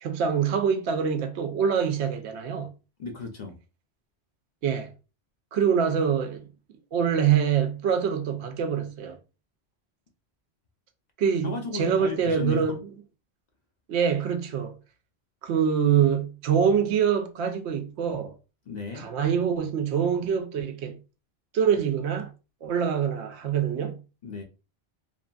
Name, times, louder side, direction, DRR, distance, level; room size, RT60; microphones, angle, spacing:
voice 1, 0.0-2.7 4.6-4.9 5.5-6.4 6.9-9.2 11.2-12.8 13.9-14.8 15.4-18.3 19.0-21.0 21.5-22.3 22.6-24.0, right 7 dB, 85° right, 0.8 m, -25 dB
voice 2, 3.0-3.6 11.4-12.8 18.7-19.1 24.2-24.4, left 3 dB, 50° left, 0.5 m, -34 dB
2.8 x 2.5 x 2.2 m
omnidirectional pair, 1.1 m